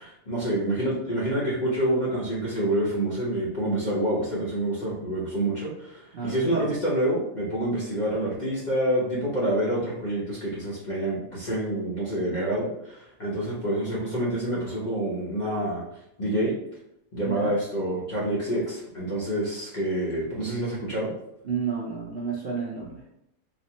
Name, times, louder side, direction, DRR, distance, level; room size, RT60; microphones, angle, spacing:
voice 1, 0.0-15.8 16.2-16.5 17.1-21.1, right 1 dB, 40° left, -7 dB, 0.8 m, -27 dB
voice 2, 6.1-6.7 17.2-17.5 21.4-22.9, right 6 dB, 55° right, -6 dB, 0.7 m, -31 dB
4.1 x 2.0 x 2.8 m, 0.79 s
omnidirectional pair, 1.6 m